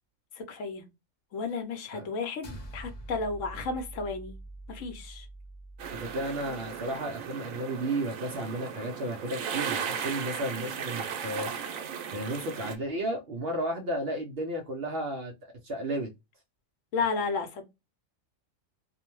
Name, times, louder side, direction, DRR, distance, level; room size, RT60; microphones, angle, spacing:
voice 1, 0.4-0.8 1.3-4.4 4.7-5.3 16.9-17.6, left 4 dB, 75° left, 1.0 m, -33 dB
sound 1, 2.4-7.0, right 2 dB, 45° left, 0.5 m, -45 dB
sound 2, 5.8-12.7, right 7 dB, 80° right, 1.0 m, -36 dB
voice 2, 5.9-11.6 12.1-16.1, right 1 dB, 60° right, 0.7 m, -33 dB
2.6 x 2.1 x 2.9 m
omnidirectional pair, 1.4 m